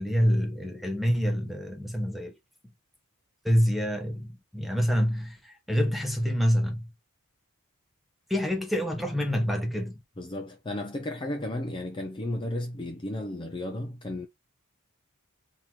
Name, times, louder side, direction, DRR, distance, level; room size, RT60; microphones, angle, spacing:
voice 1, 0.0-2.3 3.4-6.9 8.3-10.0, equal, ahead, 1.1 m, -26 dB
voice 2, 10.2-14.3, left 1 dB, 20° left, 0.5 m, -34 dB
3.7 x 2.9 x 4.4 m
head